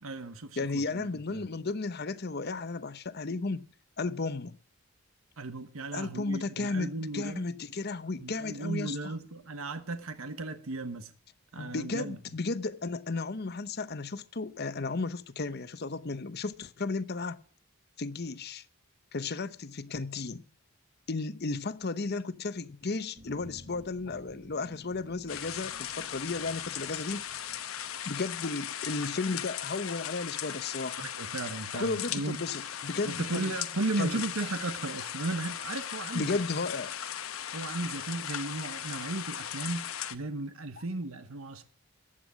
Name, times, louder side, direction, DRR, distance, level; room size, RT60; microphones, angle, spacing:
voice 1, 0.0-1.5 5.4-7.5 8.2-11.1 11.5-12.2 31.2-32.4 33.0-36.4 37.5-41.6, right 2 dB, 90° right, 1.2 m, -35 dB
voice 2, 0.6-3.6 4.0-4.6 5.9-9.0 11.6-17.4 18.0-18.6 19.1-20.4 21.1-27.2 28.0-31.1 31.7-33.5 34.0-34.2 36.1-36.9, left 3 dB, 50° left, 0.8 m, -34 dB
sound 1, 23.1-28.4, equal, 35° right, 2.2 m, -54 dB
sound 2, 25.3-40.1, left 10 dB, 85° left, 1.0 m, -38 dB
15.0 x 9.9 x 6.3 m
head